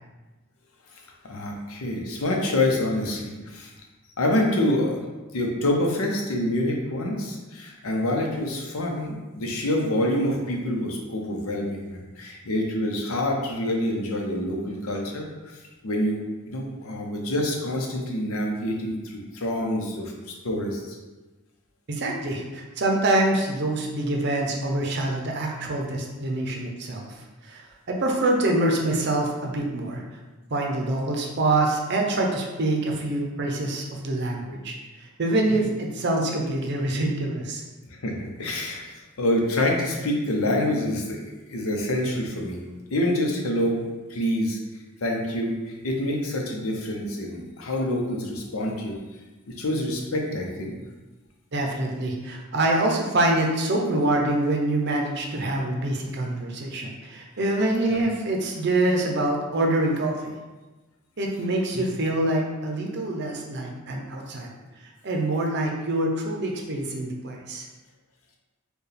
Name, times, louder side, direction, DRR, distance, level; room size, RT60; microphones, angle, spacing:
voice 1, 0.9-3.7 4.2-5.0 5.3-21.0 35.5-35.6 37.9-42.6 42.9-44.6 45.0-49.0 49.5-50.8 57.9-58.0 61.7-61.9, left 1 dB, 85° left, 1 dB, 0.7 m, -27 dB
voice 2, 21.9-27.0 27.4-27.6 27.9-30.0 30.5-37.6 51.5-60.3 61.2-64.5 65.0-67.7, right 2 dB, 55° right, 1 dB, 0.6 m, -25 dB
4.5 x 2.3 x 3.3 m, 1.2 s
head